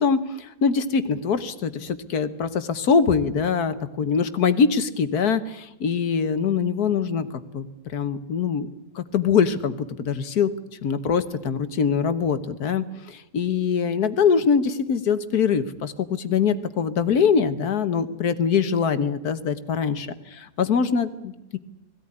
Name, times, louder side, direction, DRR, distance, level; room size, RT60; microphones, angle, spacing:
voice 1, 0.0-7.3 7.5-7.7 7.9-8.7 9.0-10.5 10.8-20.1 20.6-21.6, left 6 dB, 70° left, 11 dB, 1.7 m, -23 dB
21.0 x 16.0 x 9.8 m, 0.93 s
omnidirectional pair, 1.7 m